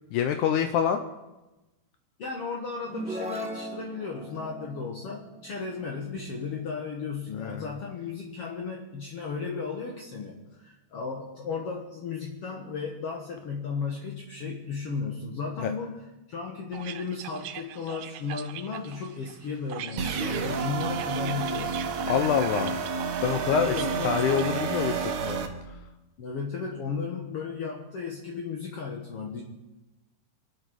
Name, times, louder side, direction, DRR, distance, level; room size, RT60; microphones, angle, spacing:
voice 1, 0.1-1.0 7.4-7.7 15.6-15.7 22.1-22.7 23.2-23.8 24.0-25.5, left 8 dB, 80° left, 6 dB, 1.8 m, -26 dB
voice 2, 2.2-16.0 16.3-21.8 23.6-24.1 26.2-29.4, left 5 dB, 55° left, 0 dB, 1.7 m, -35 dB
sound 1, 2.8-6.5, right 1 dB, 5° right, 0.5 m, -39 dB
sound 2, 16.7-25.3, right 11 dB, 90° right, 2.8 m, -42 dB
sound 3, 20.0-25.5, right 5 dB, 60° right, 2.3 m, -30 dB
26.5 x 10.5 x 4.7 m, 1.0 s
omnidirectional pair, 4.6 m